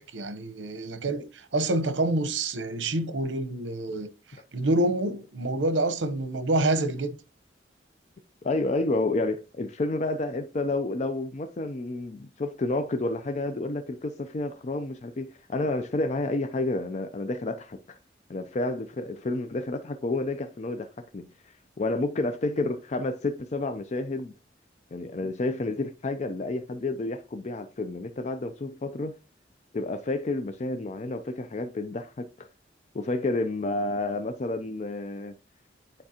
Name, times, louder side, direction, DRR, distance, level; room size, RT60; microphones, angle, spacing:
voice 1, 0.1-4.1 4.5-7.2, right 2 dB, 80° right, 0.8 m, -27 dB
voice 2, 8.4-17.8 18.3-20.9 21.1-24.3 24.9-29.1 29.7-32.5 32.9-35.3, left 2 dB, 40° left, 0.4 m, -30 dB
8.8 x 4.5 x 2.8 m
head